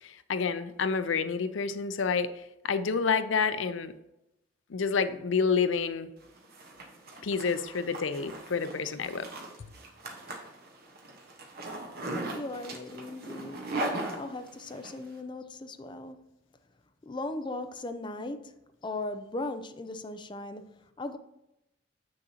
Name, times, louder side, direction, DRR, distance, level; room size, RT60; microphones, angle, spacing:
voice 1, 0.0-3.9 4.7-6.1 7.2-9.3, left 5 dB, 80° left, 0.5 m, -29 dB
Zipper (clothing), 6.2-14.9, right 2 dB, 55° right, 1.2 m, -39 dB
voice 2, 12.3-13.7 14.1-16.2 17.0-21.2, left 2 dB, 25° left, 0.5 m, -38 dB
7.7 x 6.3 x 2.8 m
head